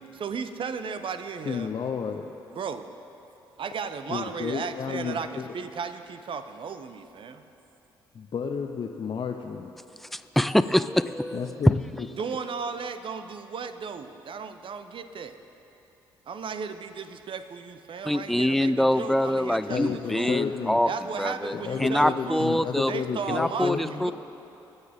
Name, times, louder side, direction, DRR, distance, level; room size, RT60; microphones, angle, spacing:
voice 1, 0.2-1.7 2.5-2.9 3.6-7.4 12.2-15.4 16.3-20.4 20.8-22.5 22.9-24.1, right 5 dB, 50° right, 10 dB, 0.7 m, -35 dB
voice 2, 1.4-2.3 4.1-5.5 8.1-9.7 11.3-12.1 19.7-20.8 21.5-24.1, left 6 dB, 45° left, 3 dB, 0.7 m, -31 dB
voice 3, 10.1-11.5 18.0-20.9 21.2-22.9 23.3-24.1, left 1 dB, ahead, 13 dB, 0.4 m, -25 dB
22.0 x 8.1 x 3.6 m, 3.0 s
figure-of-eight pair, 40°, 12 cm